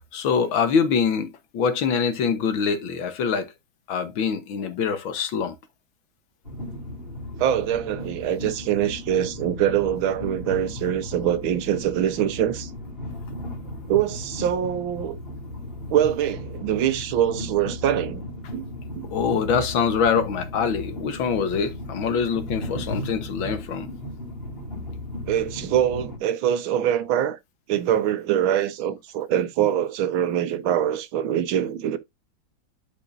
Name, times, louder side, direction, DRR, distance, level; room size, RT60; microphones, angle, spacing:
voice 1, 0.1-3.5 3.9-5.6 19.1-23.9, left 6 dB, 75° left, 1.9 m, -24 dB
Train, 6.4-26.2, left 1 dB, 30° left, 3.3 m, -36 dB
voice 2, 7.4-12.7 13.9-15.2 15.9-18.2 18.5-18.7 18.9-19.1 25.3-27.4 27.7-32.0, right 10 dB, 80° right, 1.7 m, -24 dB
11.5 x 5.0 x 2.5 m
omnidirectional pair, 2.2 m